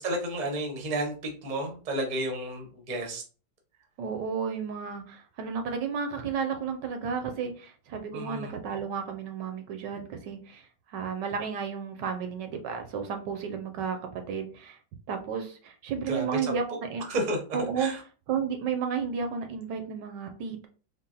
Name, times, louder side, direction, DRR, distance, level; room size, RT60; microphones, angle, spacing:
voice 1, 0.0-3.2 8.1-8.5 16.1-16.5 17.1-17.4 17.8-18.0, right 1 dB, 40° right, 3 dB, 0.6 m, -31 dB
voice 2, 4.0-14.8 15.1-17.0 17.5-17.9 18.3-20.7, right 6 dB, 75° right, 6 dB, 1.2 m, -32 dB
4.0 x 2.0 x 3.8 m, 0.37 s
omnidirectional pair, 2.1 m